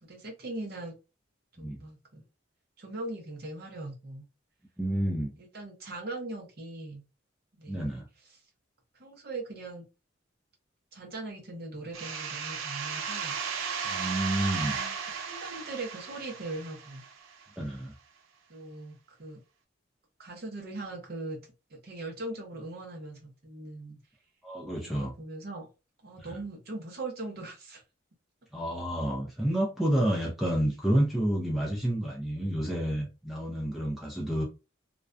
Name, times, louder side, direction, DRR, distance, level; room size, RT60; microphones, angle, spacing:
voice 1, 0.0-1.0 1.5-2.3 2.8-4.3 5.4-7.0 7.6-8.0 9.0-9.9 10.9-13.4 14.4-17.0 18.5-19.4 20.2-21.4 21.7-24.0 24.8-25.7 26.0-27.8, right 2 dB, 50° right, 0.7 m, -40 dB
voice 2, 4.8-5.3 7.7-8.1 13.8-14.8 17.6-17.9 24.4-25.1 28.5-34.4, right 1 dB, ahead, 0.4 m, -29 dB
sound 1, 11.9-17.4, right 6 dB, 80° right, 0.5 m, -35 dB
2.4 x 2.1 x 2.4 m
head